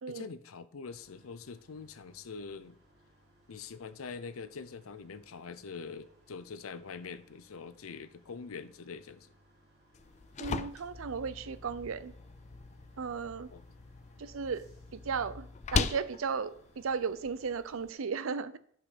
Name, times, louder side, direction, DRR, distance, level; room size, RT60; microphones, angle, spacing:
voice 1, 0.1-2.8 3.5-9.3 13.5-13.6, left 5 dB, 85° left, 0.6 m, -44 dB
sound 1, 0.9-17.5, equal, 55° right, 3.2 m, -65 dB
sound 2, 9.9-17.9, left 5 dB, 35° left, 0.4 m, -39 dB
voice 2, 10.4-12.1 13.0-13.5 14.2-18.6, right 5 dB, 70° right, 0.5 m, -35 dB
9.1 x 6.1 x 5.0 m
head